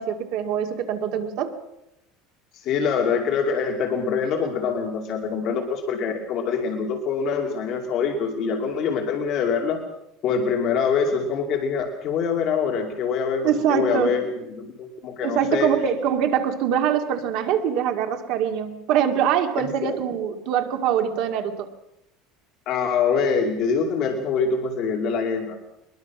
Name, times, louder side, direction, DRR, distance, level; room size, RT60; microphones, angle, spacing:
voice 1, 0.0-1.5 13.4-14.2 15.2-21.7, right 8 dB, 50° right, 6 dB, 2.2 m, -23 dB
voice 2, 2.5-9.8 10.2-15.7 19.8-20.0 22.7-25.6, left 6 dB, 40° left, 1 dB, 2.6 m, -24 dB
22.0 x 22.0 x 6.0 m, 0.86 s
cardioid pair, 170°, 0 cm